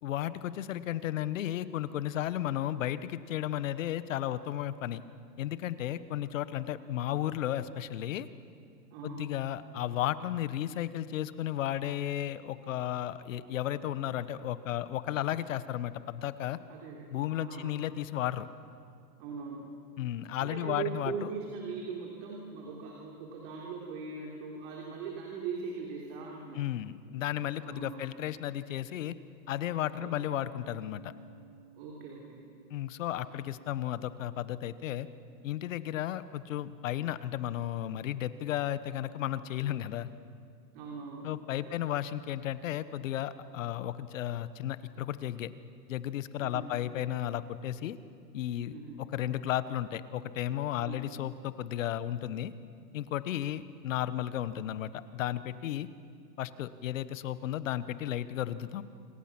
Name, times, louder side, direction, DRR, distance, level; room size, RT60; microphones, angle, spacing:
voice 1, 0.0-5.0 5.4-8.3 9.0-16.6 17.1-18.5 20.0-21.3 26.5-29.1 29.5-31.1 32.7-35.1 35.4-40.1 41.2-45.5 45.9-48.0 48.3-48.7 49.1-52.5 52.9-55.9 56.4-58.8, left 12 dB, 50° left, 14 dB, 1.2 m, -34 dB
voice 2, 8.9-9.3 16.7-17.1 17.4-17.7 19.2-19.7 20.4-26.6 27.6-28.1 30.0-30.3 31.7-32.4 40.7-41.3 41.6-41.7 46.4-46.8 48.7-49.0 50.8-51.1, right 5 dB, 35° right, -2 dB, 3.6 m, -40 dB
Piano, 29.8-37.0, right 5 dB, 10° left, 1.5 m, -59 dB
27.5 x 24.0 x 6.1 m, 2.3 s
hypercardioid pair, 145°, 49 cm